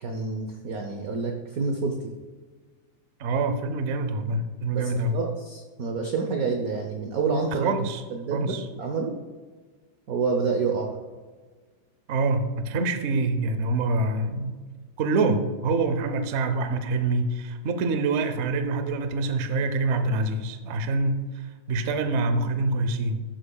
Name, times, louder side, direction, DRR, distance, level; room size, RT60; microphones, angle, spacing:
voice 1, 0.0-2.0 4.7-7.7 8.1-9.1 10.1-11.0, right 4 dB, 60° right, 3 dB, 1.0 m, -28 dB
voice 2, 3.2-5.2 7.6-8.0 8.3-8.7 12.1-14.6 15.0-23.2, right 3 dB, 80° right, 9 dB, 0.6 m, -26 dB
11.5 x 7.7 x 2.3 m, 1.4 s
omnidirectional pair, 2.2 m